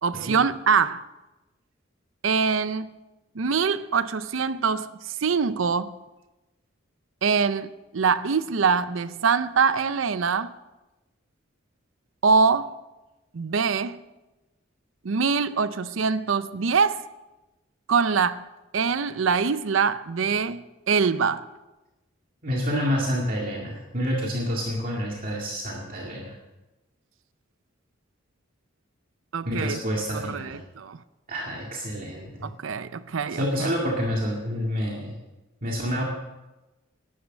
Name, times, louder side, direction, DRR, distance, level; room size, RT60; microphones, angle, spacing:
voice 1, 0.0-1.0 2.2-2.9 3.4-4.9 5.2-5.9 7.2-10.5 12.2-12.7 13.3-14.0 15.0-17.0 17.9-18.4 18.7-21.4 29.3-29.8 30.1-31.0 32.4-33.7, right 5 dB, 70° right, 0.6 m, -24 dB
voice 2, 22.4-26.3 29.5-30.6 31.3-32.5 33.3-35.2 35.6-36.0, equal, 45° right, 2.1 m, -28 dB
12.5 x 11.5 x 6.5 m
head